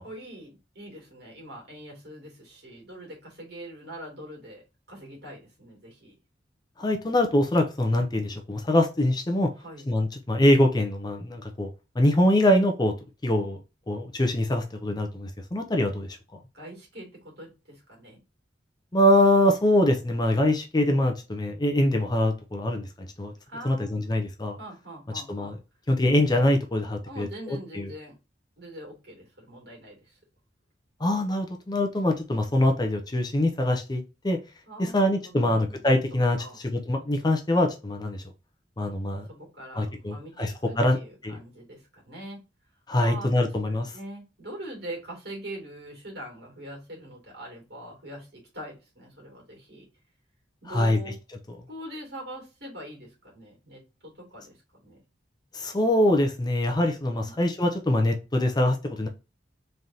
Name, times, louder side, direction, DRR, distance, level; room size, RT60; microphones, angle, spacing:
voice 1, 0.0-6.2 9.6-9.9 16.5-18.2 23.5-24.2 24.6-25.6 27.0-28.2 28.6-30.2 34.7-36.0 36.4-36.6 39.3-42.4 43.0-49.9 50.6-51.1 51.7-55.0 57.1-57.4, right 1 dB, 60° right, 2.4 m, -43 dB
voice 2, 6.8-9.5 9.9-11.7 12.0-12.9 13.2-13.6 13.9-16.2 18.9-23.3 23.6-24.6 25.3-25.6 25.9-27.3 27.7-27.9 31.0-34.4 34.8-38.2 38.8-39.3 39.8-41.0 41.2-41.4 42.9-43.9 50.7-51.0 55.5-59.1, left 1 dB, 20° left, 0.5 m, -24 dB
3.8 x 3.3 x 2.7 m
head